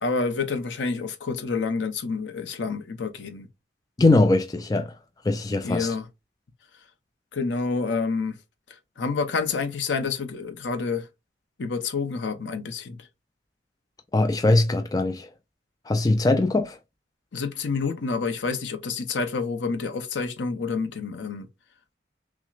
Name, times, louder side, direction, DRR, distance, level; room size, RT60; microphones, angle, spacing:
voice 1, 0.0-3.5 5.6-6.1 7.3-8.4 9.0-11.1 11.6-13.1 17.3-21.5, left 4 dB, 80° left, 0.7 m, -28 dB
voice 2, 4.0-4.9 5.2-5.9 14.1-15.3 15.9-16.8, left 2 dB, 20° left, 0.3 m, -21 dB
5.9 x 2.1 x 2.4 m
head